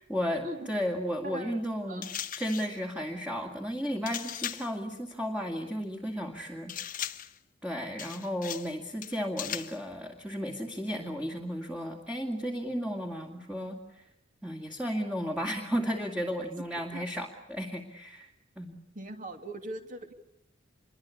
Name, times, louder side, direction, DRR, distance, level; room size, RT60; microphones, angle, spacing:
voice 1, 0.1-2.1 2.4-7.1 7.6-14.0 14.4-18.3 18.6-18.8, equal, 5° right, 2 dB, 2.3 m, -34 dB
voice 2, 1.2-1.6 1.9-2.1 16.6-17.0 18.9-20.1, right 1 dB, 40° right, 7 dB, 2.7 m, -41 dB
sound 1, 2.0-2.8 4.1-4.8 6.7-7.4 8.0-8.7 9.0-9.8, left 10 dB, 40° left, 1.2 m, -38 dB
27.0 x 23.0 x 8.5 m, 0.78 s
head